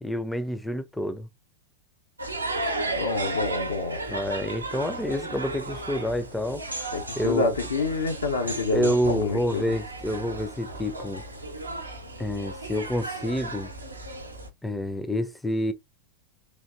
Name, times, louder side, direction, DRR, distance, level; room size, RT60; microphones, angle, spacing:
voice 1, 0.0-1.3 4.1-6.9 7.2-7.5 8.7-11.2 12.2-13.7 14.6-15.7, equal, 5° left, 0.4 m, -28 dB
sound 1, 2.2-14.5, right 2 dB, 80° right, 0.6 m, -34 dB
voice 2, 2.9-4.0 6.9-9.6, left 3 dB, 70° left, 0.5 m, -27 dB
3.3 x 2.5 x 2.5 m
figure-of-eight pair, 90°, 0 cm